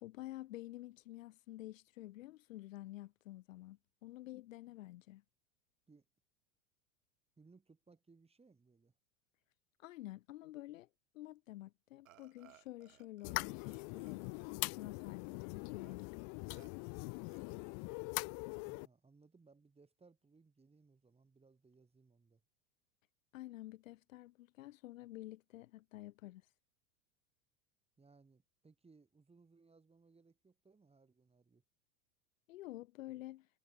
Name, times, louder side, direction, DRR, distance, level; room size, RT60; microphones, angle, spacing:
voice 1, 0.0-5.2 9.8-10.9 11.1-16.2 23.3-26.4 32.5-33.5, left 16 dB, 80° left, 1.5 m, -50 dB
voice 2, 7.4-8.9 18.5-22.4 28.0-31.6, right 4 dB, 15° right, 6.4 m, -66 dB
Burping eructation, 12.1-13.4 13.6-15.4 15.8-15.9 16.5-16.7 17.3-17.8, right 12 dB, 85° right, 5.1 m, -66 dB
quiet pops, 13.2-18.9, left 40 dB or more, 50° left, 0.5 m, -42 dB
hypercardioid pair, 100°, 39 cm